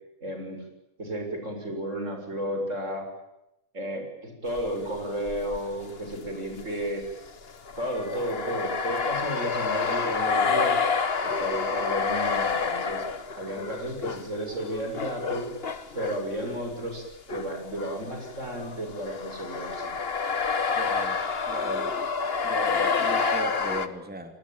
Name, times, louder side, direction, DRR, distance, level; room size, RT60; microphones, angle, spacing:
voice 1, 0.2-0.6 1.0-3.1 3.7-7.1 7.8-10.8 11.2-13.1 13.4-15.5 15.9-20.0, right 1 dB, 60° right, 4 dB, 7.3 m, -33 dB
sound 1, 4.6-4.9 5.3-17.5 17.8-23.9, left 5 dB, 45° left, 1.7 m, -29 dB
voice 2, 20.8-21.2 21.5-21.9 22.4-24.4, right 1 dB, 5° right, 6 dB, 3.1 m, -37 dB
28.5 x 20.0 x 9.1 m, 0.88 s
omnidirectional pair, 1.5 m